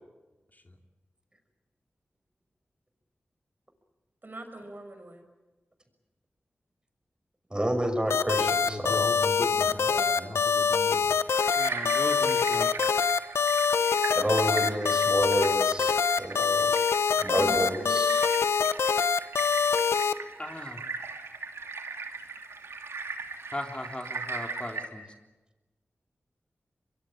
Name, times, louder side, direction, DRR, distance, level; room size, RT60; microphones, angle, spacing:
voice 1, 4.2-5.2 9.6-10.3 17.3-18.0, right 1 dB, 50° right, 6 dB, 6.1 m, -41 dB
voice 2, 7.5-9.1 10.9-11.0 14.1-16.8 17.2-18.2, right 1 dB, 20° right, 7 dB, 6.0 m, -29 dB
sound 1, 8.1-20.1, left 5 dB, 90° left, 0.9 m, -24 dB
voice 3, 8.7-11.1, left 2 dB, 45° left, 4 dB, 2.7 m, -38 dB
sound 2, 11.3-24.9, right 4 dB, 85° right, 2.7 m, -39 dB
voice 4, 11.6-12.7 20.0-20.1 20.4-20.8 23.5-25.0, left 1 dB, 25° left, 3 dB, 3.6 m, -37 dB
24.0 x 22.5 x 8.8 m, 1.1 s
cardioid pair, 40°, 4 cm